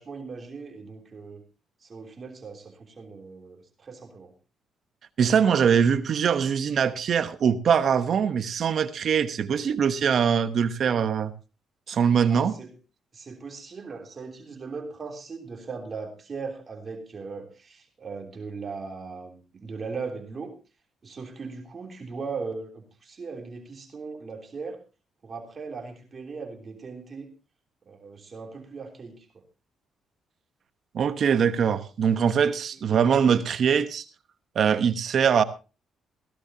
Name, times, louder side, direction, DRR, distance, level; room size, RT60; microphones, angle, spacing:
voice 1, 0.0-1.4 1.8-4.3 12.2-12.7 13.1-20.5 21.0-24.8 25.2-27.3 27.9-29.4, right 4 dB, 40° right, 3.2 m, -38 dB
voice 2, 5.2-11.3 11.9-12.5 30.9-34.0 34.5-35.4, right 7 dB, 60° right, 1.1 m, -22 dB
17.0 x 15.5 x 2.8 m
cardioid pair, 90°, 0 cm